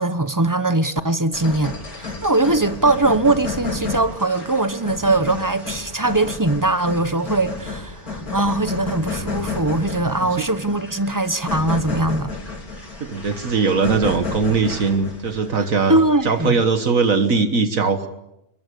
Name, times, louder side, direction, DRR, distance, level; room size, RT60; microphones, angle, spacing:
voice 1, 0.0-12.3 15.9-16.5, right 2 dB, 15° right, 0.8 m, -21 dB
sound 1, 1.3-16.8, left 3 dB, 90° left, 5.1 m, -32 dB
voice 2, 13.0-16.0 16.3-18.1, right 4 dB, 70° right, 1.8 m, -20 dB
25.5 x 22.5 x 6.9 m
omnidirectional pair, 1.5 m